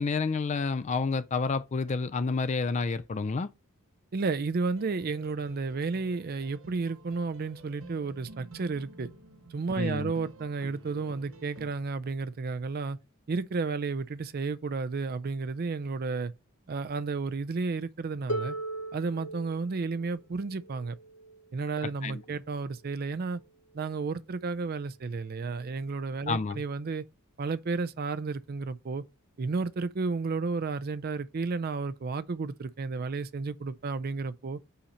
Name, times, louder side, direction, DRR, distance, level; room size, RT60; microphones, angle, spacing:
voice 1, 0.0-3.5 9.8-10.1 22.0-22.2 26.3-26.6, left 4 dB, 35° left, 0.4 m, -29 dB
voice 2, 4.1-9.1 9.5-13.0 13.3-16.3 16.7-18.6 18.9-21.0 21.5-23.4 23.7-27.0 27.4-29.0 29.4-34.6, right 4 dB, 45° right, 0.4 m, -32 dB
sound 1, 4.8-11.7, right 3 dB, 65° right, 0.8 m, -51 dB
Harp, 18.3-24.1 25.1-25.2, right 2 dB, 60° left, 0.9 m, -40 dB
5.6 x 4.2 x 5.1 m
head